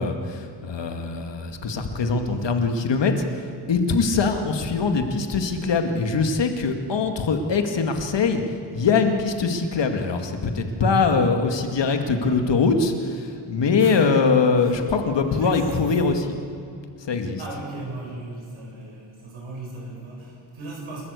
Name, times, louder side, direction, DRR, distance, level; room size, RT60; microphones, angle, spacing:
voice 1, 0.0-3.2 3.7-8.4 8.7-16.4 17.0-17.4, left 4 dB, 60° left, 5 dB, 2.2 m, -22 dB
voice 2, 2.2-3.0 12.2-12.9 13.8-14.2 14.5-14.7 15.3-15.8 17.4-21.0, right 2 dB, 85° right, -2 dB, 7.9 m, -38 dB
28.5 x 13.5 x 8.4 m, 2.5 s
wide cardioid pair, 130°, 48 cm